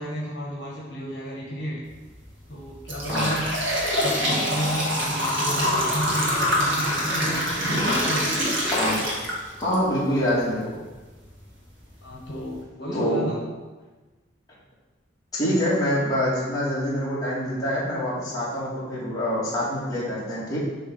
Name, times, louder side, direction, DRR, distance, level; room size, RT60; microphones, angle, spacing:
voice 1, 0.0-1.8 2.5-3.5 4.0-8.4 12.0-13.4, equal, 60° left, -4 dB, 1.4 m, -32 dB
sound 1, 1.9-2.1 2.6-9.7 10.2-10.3 11.2-11.3 11.8-11.9 12.3-12.5, equal, 75° right, 1.8 m, -25 dB
voice 2, 9.6-10.8 12.9-13.2 15.3-20.6, equal, 20° left, -8 dB, 2.1 m, -25 dB
7.2 x 3.4 x 5.9 m, 1.2 s
head